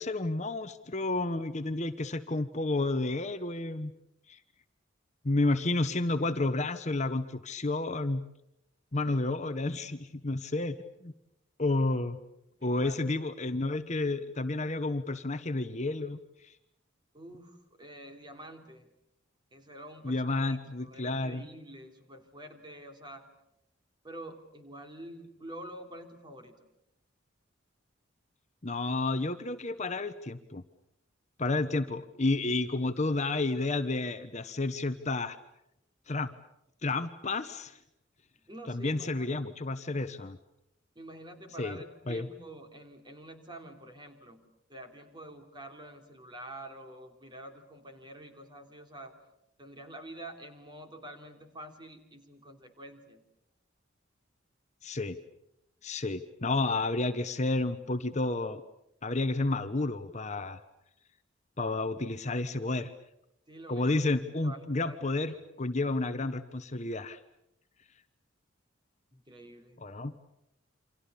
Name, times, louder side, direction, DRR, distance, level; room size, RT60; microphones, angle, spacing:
voice 1, 0.0-3.9 4.3-4.4 5.2-8.2 8.9-10.8 11.0-11.1 11.6-12.2 12.6-16.2 16.4-16.5 20.0-21.4 28.6-30.6 31.4-35.4 36.1-36.3 36.8-37.8 38.7-40.4 41.6-41.8 42.1-42.3 54.8-55.2 55.8-58.6 59.0-60.6 61.6-62.9 63.7-65.3 65.6-67.2 69.8-70.1, left 2 dB, 35° left, 10 dB, 1.0 m, -31 dB
voice 2, 12.6-13.0 17.1-18.9 19.5-23.3 24.0-26.6 38.5-39.5 40.9-44.4 44.7-49.1 49.6-53.2 63.5-65.6 69.1-69.8, right 1 dB, 25° right, 5 dB, 3.3 m, -47 dB
28.5 x 26.0 x 6.9 m, 0.83 s
head